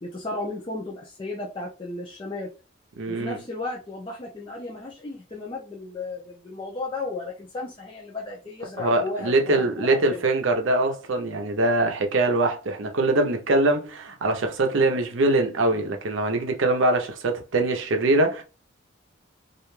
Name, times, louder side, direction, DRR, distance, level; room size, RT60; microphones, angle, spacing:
voice 1, 0.0-2.5 3.0-10.2, left 2 dB, 25° left, 0.5 m, -34 dB
voice 2, 3.0-3.4 8.8-18.4, right 2 dB, 70° right, 0.6 m, -23 dB
2.4 x 2.2 x 3.0 m
head